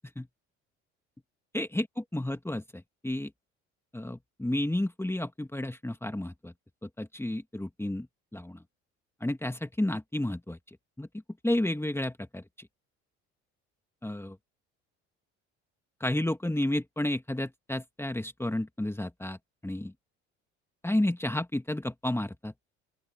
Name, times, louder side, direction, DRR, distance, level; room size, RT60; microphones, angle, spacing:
voice 1, 1.5-1.9 2.1-3.3 3.9-6.5 6.8-8.1 8.3-8.6 9.2-11.1 11.4-12.7 14.0-14.4 16.0-19.4 19.6-19.9 20.8-22.5, left 1 dB, 5° left, 2.4 m, -31 dB
open air
hypercardioid pair, 60°, 35 cm